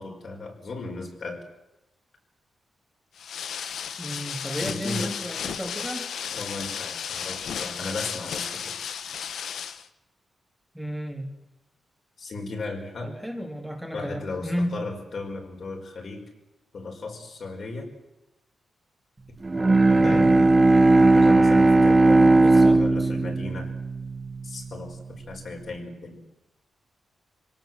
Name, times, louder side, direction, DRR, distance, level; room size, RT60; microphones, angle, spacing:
voice 1, 0.0-1.4 4.5-5.1 6.3-8.8 12.2-13.1 13.9-16.3 16.7-17.9 19.9-20.6 21.1-23.7 24.4-26.2, left 3 dB, 50° left, 2 dB, 5.0 m, -36 dB
sound 1, 3.2-9.9, left 8 dB, 80° left, 1.1 m, -34 dB
voice 2, 4.0-6.1 10.7-11.3 13.0-14.8 20.0-20.4 22.4-23.1, equal, ahead, 1 dB, 2.5 m, -33 dB
Bowed string instrument, 19.4-24.8, right 2 dB, 25° right, 1.6 m, -18 dB
26.0 x 17.5 x 7.7 m, 0.98 s
wide cardioid pair, 135°, 0 cm